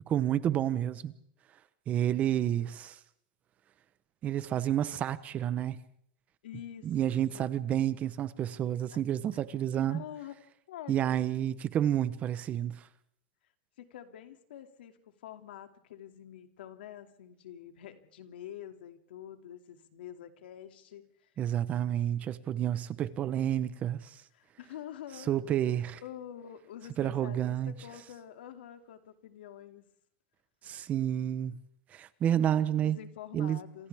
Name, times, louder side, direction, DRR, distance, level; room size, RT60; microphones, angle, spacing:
voice 1, 0.1-1.1 1.9-3.0 4.2-5.8 6.8-10.0 10.9-12.9 21.4-24.1 25.3-26.0 27.0-27.7 30.6-31.6 31.9-33.0 33.3-33.6, right 10 dB, 25° right, 1.0 m, -30 dB
voice 2, 6.4-6.9 7.3-7.5 8.9-9.0 9.9-10.4 10.7-11.1 13.8-21.3 24.3-25.4 26.0-29.9 32.8-33.9, left 11 dB, 85° left, 2.6 m, -46 dB
28.0 x 26.0 x 3.6 m
supercardioid pair, 150°, 5 cm